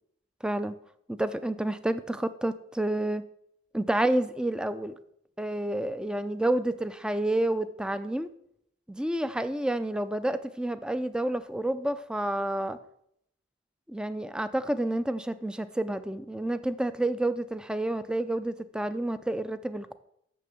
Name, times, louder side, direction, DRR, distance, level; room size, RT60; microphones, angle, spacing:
voice 1, 0.4-0.8 1.1-3.3 3.7-4.9 5.4-8.3 9.0-12.8 13.9-19.9, right 1 dB, 5° right, 13 dB, 0.3 m, -29 dB
6.7 x 6.3 x 6.9 m, 0.74 s
head